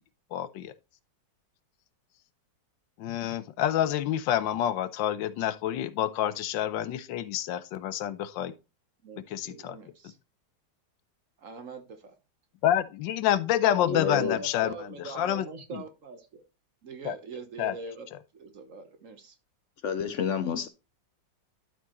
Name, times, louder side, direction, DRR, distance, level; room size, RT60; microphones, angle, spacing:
voice 1, 0.3-0.7 3.0-8.5 9.3-9.8 12.6-14.7 15.1-15.5 15.7-15.8 17.0-17.1 17.6-17.7, left 11 dB, 90° left, 1.4 m, -28 dB
voice 2, 9.0-10.2 11.4-12.2 13.9-16.4 16.8-18.1 18.3-19.4, right 4 dB, 50° right, 1.2 m, -42 dB
voice 3, 13.7-14.4 19.8-20.7, left 6 dB, 65° left, 0.8 m, -29 dB
12.0 x 4.6 x 3.0 m
omnidirectional pair, 2.0 m